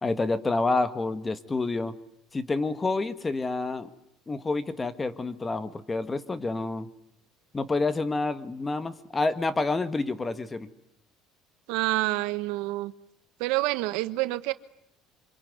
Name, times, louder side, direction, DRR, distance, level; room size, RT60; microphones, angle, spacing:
voice 1, 0.0-1.9 2.3-3.9 4.3-6.9 7.5-10.7, left 3 dB, 20° left, 12 dB, 1.7 m, -28 dB
voice 2, 11.7-12.9 13.4-14.5, right 19 dB, 80° right, 13 dB, 1.2 m, -27 dB
26.0 x 23.5 x 9.6 m, 0.75 s
cardioid pair, 115°, 0 cm